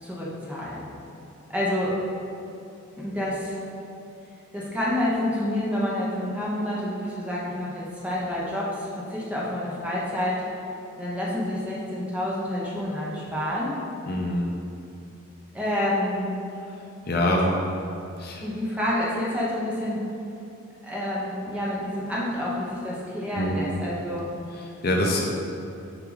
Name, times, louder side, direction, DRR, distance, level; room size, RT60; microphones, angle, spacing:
voice 1, 0.0-0.8 1.5-2.0 3.0-3.6 4.5-10.4 11.0-13.7 15.5-16.3 18.4-20.0 20.8-24.3, left 1 dB, 5° right, -6 dB, 1.0 m, -28 dB
voice 2, 14.1-14.5 17.1-17.5 18.2-18.4 23.3-23.7 24.6-25.3, left 1 dB, 45° left, -1 dB, 0.6 m, -25 dB
5.9 x 4.7 x 4.0 m, 2.7 s
head